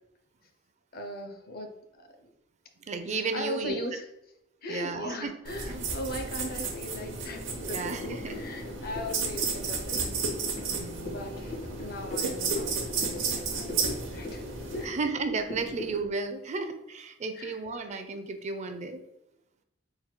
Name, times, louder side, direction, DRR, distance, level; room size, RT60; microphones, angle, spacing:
voice 1, 0.9-2.3 3.3-4.0 4.6-10.0 11.1-14.4 14.7-15.0 15.7-15.8 17.3-17.6, left 1 dB, 50° left, 5 dB, 0.5 m, -39 dB
voice 2, 2.9-3.8 4.7-5.3 5.7-5.9 7.6-8.4 10.7-11.2 14.8-19.0, right 4 dB, 35° right, 8 dB, 0.4 m, -33 dB
sound 1, 5.4-14.8, right 4 dB, 80° right, 0.8 m, -33 dB
sound 2, 7.5-16.0, left 2 dB, 85° left, 1.5 m, -41 dB
3.9 x 2.2 x 4.3 m, 0.84 s
head